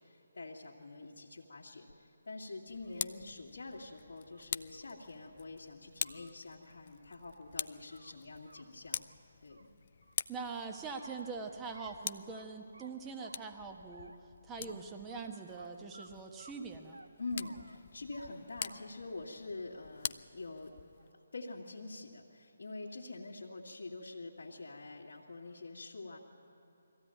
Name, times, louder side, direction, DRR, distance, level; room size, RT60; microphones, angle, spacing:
voice 1, 0.0-9.0 9.4-9.7 14.6-14.8 17.2-20.7 21.3-26.2, left 3 dB, 70° left, -7 dB, 2.1 m, -46 dB
sound 1, 1.9-2.0 2.6-3.2 4.3-4.4 4.7-4.8 5.2-5.3 5.9-6.3 7.5-8.1 8.4-8.6 8.9-10.1 10.5-11.3 11.7-12.0 12.3-12.5 12.7-13.5 13.9-14.3 14.7-14.8 15.1-15.2 15.6-15.7 15.9-16.1 16.4-17.1 17.4-17.8 18.1-18.3 18.6-19.0 19.4-19.9 20.7-21.2, right 2 dB, 80° right, 1.1 m, -57 dB
Tick, 2.7-21.1, left 7 dB, 45° left, 0.4 m, -46 dB
voice 2, 10.3-14.1 14.4-17.0, right 4 dB, 15° right, 3 dB, 1.4 m, -43 dB
21.5 x 15.5 x 9.1 m, 2.6 s
figure-of-eight pair, 150°, 0 cm